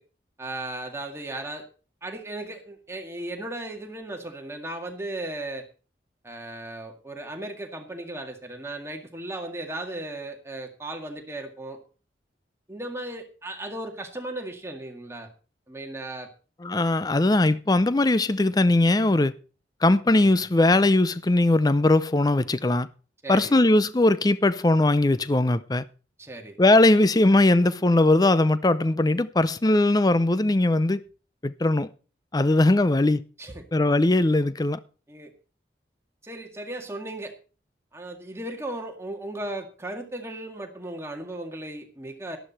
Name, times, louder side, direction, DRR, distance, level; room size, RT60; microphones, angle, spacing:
voice 1, 0.4-1.7 2.0-5.6 6.2-11.8 12.7-15.3 15.7-16.3 20.1-20.3 23.2-23.6 26.2-26.6 33.4-33.7 35.1-35.3 36.2-37.3 37.9-42.4, right 1 dB, 15° right, 2.0 m, -36 dB
voice 2, 16.6-19.3 19.8-22.9 23.3-25.8 26.6-31.0 31.4-31.9 32.3-33.2 33.7-34.8, left 2 dB, 20° left, 0.5 m, -20 dB
12.5 x 11.5 x 4.3 m
head